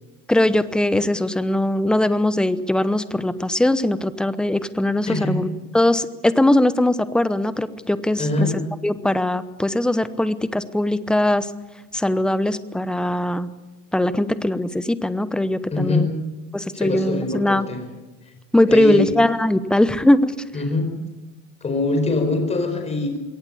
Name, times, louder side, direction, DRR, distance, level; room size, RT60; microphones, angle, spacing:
voice 1, 0.3-5.5 5.7-8.5 8.8-11.5 11.9-13.5 13.9-16.1 16.5-17.7 18.5-20.3, left 1 dB, ahead, 14 dB, 0.8 m, -20 dB
voice 2, 5.1-5.4 8.2-8.5 15.7-16.1 16.7-17.8 18.7-19.1 20.5-20.9 21.6-23.2, left 2 dB, 15° left, 4 dB, 4.7 m, -23 dB
22.0 x 18.0 x 8.6 m, 1.1 s
supercardioid pair, 135°, 37 cm